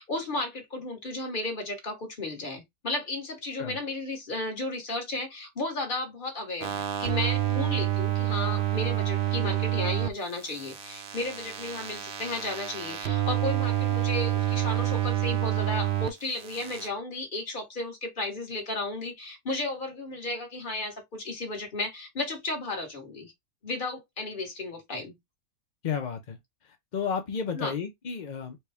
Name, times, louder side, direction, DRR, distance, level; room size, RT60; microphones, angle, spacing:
voice 1, 0.0-23.3 23.6-25.2 27.5-27.7, left 2 dB, 35° left, 1.3 m, -34 dB
sound 1, 6.6-10.1 10.4-16.1 16.4-16.9, right 12 dB, 60° right, 0.7 m, -28 dB
voice 2, 25.8-26.4 26.9-28.6, left 6 dB, 50° left, 0.5 m, -32 dB
4.3 x 2.2 x 3.4 m
omnidirectional pair, 1.5 m